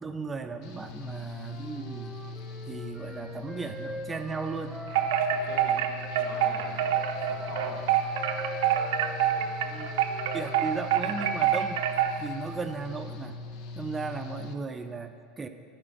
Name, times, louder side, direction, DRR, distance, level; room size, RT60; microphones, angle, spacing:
voice 1, 0.0-2.2 2.7-4.8 9.4-9.9 10.3-11.8 12.2-13.4 13.7-15.5, right 4 dB, 20° right, 7 dB, 0.5 m, -36 dB
Engine / Mechanical fan, 0.6-14.5, left 3 dB, 60° left, 0.6 m, -41 dB
Wind instrument woodwind instrument, 1.1-5.7 6.3-11.2, equal, 5° left, 1.5 m, -44 dB
Wind chime, 4.9-12.3, right 10 dB, 75° right, 0.5 m, -26 dB
voice 2, 5.3-7.9, left 2 dB, 80° left, -1 dB, 1.6 m, -44 dB
9.9 x 4.4 x 6.3 m, 2.2 s
hypercardioid pair, 95°, 0 cm